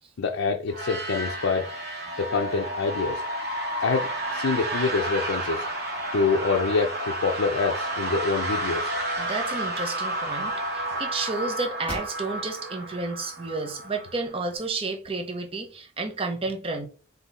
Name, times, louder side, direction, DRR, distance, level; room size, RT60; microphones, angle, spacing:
voice 1, 0.2-1.7 2.2-3.2 3.8-5.7 6.1-8.9, left 4 dB, 75° left, 0.5 m, -26 dB
sound 1, 0.7-14.4, right 1 dB, 50° right, 1.4 m, -31 dB
voice 2, 9.2-16.9, right 3 dB, 25° right, 0.6 m, -31 dB
sound 2, 11.9-12.7 13.1-13.2 13.8-14.7, equal, 10° left, 1.5 m, -41 dB
3.9 x 2.7 x 4.0 m
head